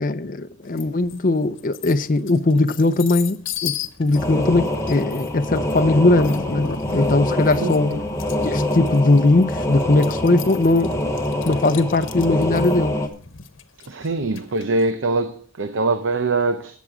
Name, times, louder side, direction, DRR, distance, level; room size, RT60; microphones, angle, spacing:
voice 1, 0.0-8.0 8.4-11.1 11.4-13.0, left 2 dB, 45° left, 0.6 m, -19 dB
sound 1, 0.8-1.2 1.6-14.8, left 6 dB, 80° left, 1.0 m, -34 dB
sound 2, 4.1-13.1, left 1 dB, 15° left, 1.0 m, -25 dB
voice 2, 7.5-8.0 13.8-16.8, right 3 dB, 75° right, 0.7 m, -23 dB
18.0 x 7.3 x 3.7 m
head